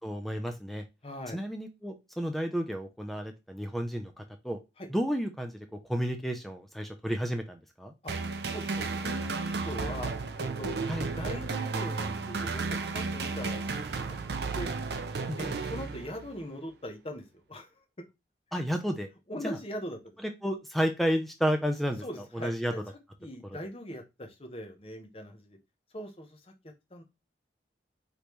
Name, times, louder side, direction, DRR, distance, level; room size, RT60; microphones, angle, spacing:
voice 1, 0.0-0.8 1.3-4.6 4.9-7.9 10.9-11.1 15.3-15.5 18.5-19.1 19.4-19.6 20.2-22.7 23.4-23.6, equal, ahead, 5 dB, 0.5 m, -32 dB
voice 2, 1.0-1.4 4.8-4.9 8.0-8.1 8.5-10.8 11.2-14.7 15.4-17.7 18.5-18.6 19.3-20.2 22.0-22.8 23.2-25.6 25.9-26.4 26.9-27.0, equal, 30° left, 4 dB, 0.9 m, -41 dB
sound 1, 8.1-16.4, right 4 dB, 70° right, 0.5 m, -33 dB
5.1 x 3.1 x 3.1 m, 0.24 s
head